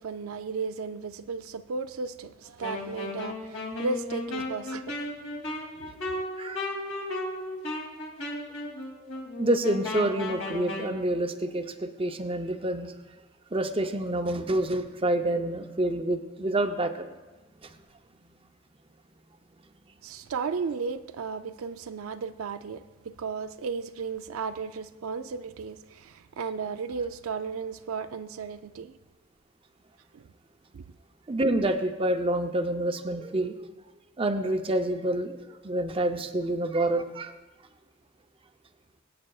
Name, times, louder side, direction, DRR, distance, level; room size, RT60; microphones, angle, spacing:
voice 1, 0.0-5.0 5.8-5.9 6.2-6.3 20.0-29.0 30.1-30.3 30.7-30.8, right 5 dB, 80° right, 0.4 m, -35 dB
Wind instrument woodwind instrument, 2.6-10.9, left 2 dB, 65° left, 2.6 m, -35 dB
voice 2, 9.4-12.9 13.5-17.1 17.6-17.7 31.3-33.6 34.2-37.3, right 1 dB, 25° right, 0.6 m, -28 dB
23.5 x 8.7 x 2.3 m
head